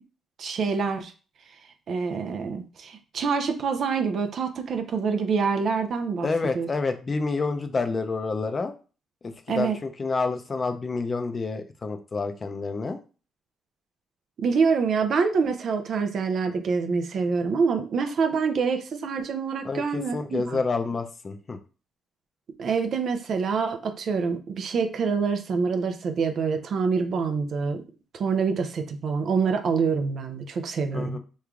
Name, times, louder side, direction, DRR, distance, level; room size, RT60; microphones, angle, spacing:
voice 1, 0.4-1.1 1.9-6.3 6.5-6.7 9.5-9.8 14.4-20.6 22.6-27.8 28.1-31.2, right 5 dB, 60° right, 7 dB, 0.5 m, -26 dB
voice 2, 6.2-8.7 9.2-13.0 19.6-21.6 30.9-31.2, left 4 dB, 35° left, 7 dB, 0.5 m, -28 dB
3.1 x 2.3 x 3.6 m, 0.35 s
cardioid pair, 90°, 0 cm